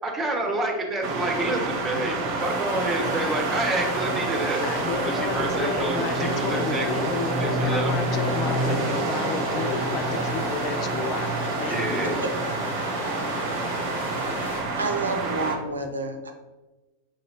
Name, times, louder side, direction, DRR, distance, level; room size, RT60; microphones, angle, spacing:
voice 1, 0.0-4.6 5.0-7.0 7.4-7.9 11.7-12.3, right 2 dB, 15° right, 1 dB, 0.9 m, -28 dB
sound 1, 1.0-15.6, right 2 dB, 45° right, 0.7 m, -28 dB
sound 2, 2.4-14.6, left 1 dB, 75° left, 1.3 m, -35 dB
voice 2, 4.6-12.0, left 5 dB, 35° left, 7 dB, 0.3 m, -32 dB
voice 3, 14.4-16.3, right 3 dB, 75° right, 5 dB, 0.4 m, -30 dB
5.8 x 2.7 x 2.8 m, 1.2 s
figure-of-eight pair, 90°, 0 cm